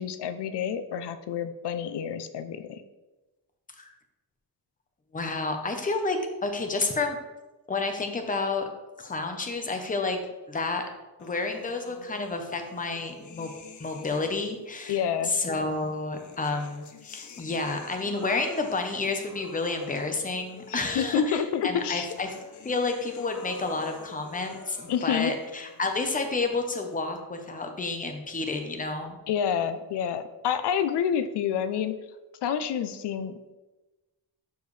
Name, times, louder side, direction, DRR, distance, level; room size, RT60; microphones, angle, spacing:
voice 1, 0.0-2.8 14.9-15.3 20.7-22.1 24.9-25.3 29.3-32.0 32.4-33.6, left 8 dB, 85° left, 11 dB, 0.6 m, -28 dB
voice 2, 5.1-7.2 7.7-8.7 9.0-10.2 10.5-10.9 11.2-13.5 13.8-15.0 15.2-22.4 22.6-29.2, left 3 dB, 20° left, 5 dB, 0.8 m, -30 dB
sound 1, 11.2-14.7 15.7-27.2, left 5 dB, 50° left, 0.7 m, -48 dB
12.0 x 4.7 x 3.2 m, 1.1 s
wide cardioid pair, 155°, 39 cm